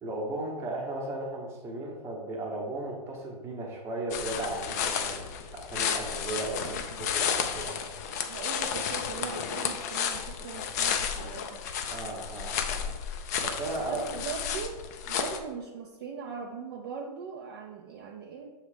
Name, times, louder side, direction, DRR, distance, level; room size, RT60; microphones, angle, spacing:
voice 1, 0.0-5.2 5.5-7.7 11.9-12.9 13.4-14.0, right 2 dB, 10° right, -1 dB, 0.9 m, -35 dB
sound 1, 4.1-15.4, left 7 dB, 25° left, 0.4 m, -32 dB
voice 2, 6.6-7.0 7.6-7.8 8.2-11.6 13.8-14.8 15.1-18.5, right 6 dB, 30° right, 1 dB, 0.5 m, -40 dB
6.9 x 3.2 x 4.9 m, 1.2 s
hypercardioid pair, 160°, 21 cm